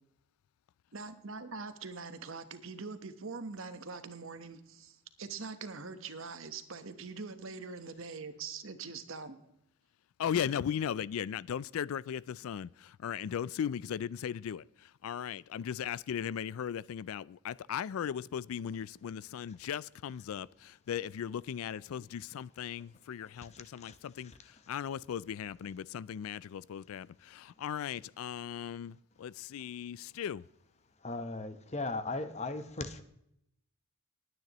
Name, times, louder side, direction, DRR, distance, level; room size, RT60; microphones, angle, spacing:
voice 1, 0.9-9.5, right 4 dB, 65° right, 1.1 m, -43 dB
voice 2, 10.2-30.4, left 8 dB, 75° left, 0.3 m, -37 dB
voice 3, 23.2-24.0 24.2-24.5 31.0-33.0, left 2 dB, 30° left, 0.8 m, -38 dB
20.0 x 9.4 x 3.0 m
head